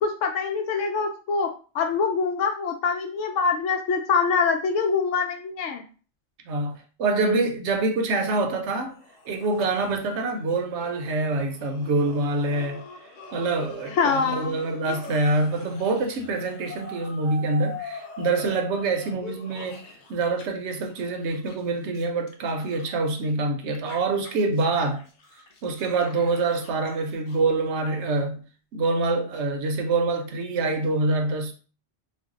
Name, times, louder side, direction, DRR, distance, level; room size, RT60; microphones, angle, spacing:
voice 1, 0.0-5.8 13.9-14.6, left 5 dB, 85° left, 1.0 m, -24 dB
voice 2, 6.5-9.0 9.3-12.8 13.3-19.8 20.1-25.0 25.6-28.4 28.7-31.5, right 3 dB, 70° right, 0.9 m, -25 dB
sound 1, 8.9-20.4 20.7-23.3 23.7-28.2, left 2 dB, 50° left, 0.7 m, -44 dB
2.5 x 2.2 x 3.6 m
omnidirectional pair, 1.2 m